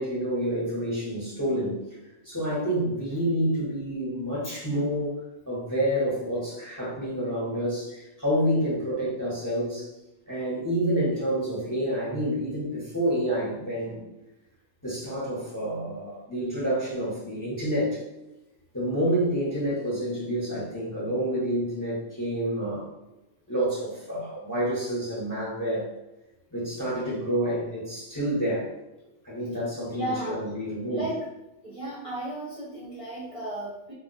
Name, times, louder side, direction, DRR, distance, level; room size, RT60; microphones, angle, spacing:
voice 1, 0.0-1.8 2.2-9.9 10.3-14.1 14.8-18.0 18.7-22.9 23.5-25.9 26.5-28.7 29.2-31.0, right 1 dB, 20° left, -7 dB, 0.7 m, -28 dB
voice 2, 29.9-30.4 30.9-31.1 31.6-33.9, right 1 dB, 35° right, -8 dB, 0.6 m, -34 dB
2.3 x 2.2 x 3.8 m, 0.96 s
omnidirectional pair, 1.3 m